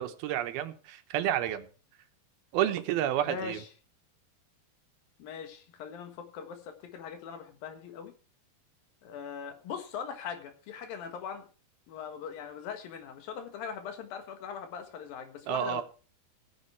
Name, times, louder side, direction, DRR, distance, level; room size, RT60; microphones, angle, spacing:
voice 1, 0.0-1.7 2.5-3.6 15.5-15.8, right 11 dB, 85° right, 2.9 m, -30 dB
voice 2, 3.3-3.7 5.2-8.1 9.0-11.5 11.9-15.8, left 7 dB, 75° left, 3.2 m, -41 dB
15.0 x 9.7 x 4.6 m
omnidirectional pair, 4.4 m